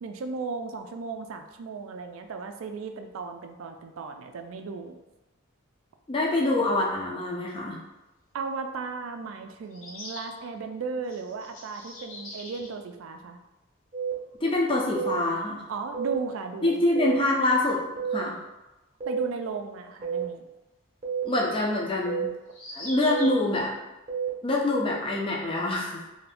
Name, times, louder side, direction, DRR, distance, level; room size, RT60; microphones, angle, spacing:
voice 1, 0.0-5.0 8.3-13.4 15.7-16.8 19.1-20.4, right 4 dB, 70° right, 6 dB, 0.3 m, -35 dB
voice 2, 6.1-7.8 14.4-15.6 16.6-17.8 18.1-18.4 21.2-22.3 22.7-23.7 24.4-26.0, left 2 dB, 25° left, -2 dB, 0.4 m, -25 dB
sound 1, 8.2-8.3 9.7-10.3 11.0-12.7 14.0-14.1 14.2-14.3 16.8-16.9 20.0-20.1 22.5-23.5, left 1 dB, 70° left, 0.7 m, -42 dB
sound 2, 13.9-14.1 14.9-15.1 15.9-16.1 16.9-17.2 18.0-18.2 19.0-19.2 20.0-20.2 21.0-21.2 22.1-22.3 23.1-23.3 24.1-24.3, right 7 dB, 30° right, 0.7 m, -29 dB
2.7 x 2.5 x 3.4 m, 1.0 s
head